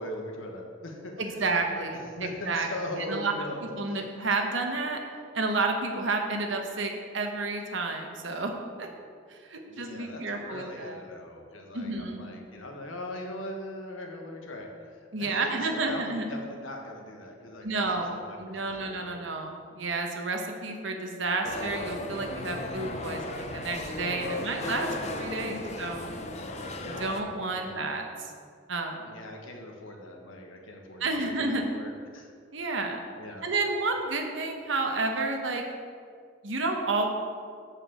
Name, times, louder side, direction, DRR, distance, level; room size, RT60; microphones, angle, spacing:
voice 1, 0.0-1.4 1.9-4.0 9.6-19.2 24.2-25.7 26.4-27.8 29.0-32.3 33.2-33.5, left 1 dB, 85° left, 2 dB, 1.4 m, -40 dB
voice 2, 1.2-2.7 3.1-3.3 3.8-5.0 5.3-8.5 8.8-8.9 9.3-11.0 11.7-12.3 15.1-16.2 17.6-26.1 26.8-28.3 28.7-29.1 31.0-31.6 32.5-33.0 33.4-35.6 36.4-37.1, right 3 dB, 70° right, 3 dB, 1.1 m, -30 dB
sound 1, 21.4-27.2, left 1 dB, 35° left, 0.6 m, -36 dB
6.8 x 6.0 x 7.3 m, 2.1 s
head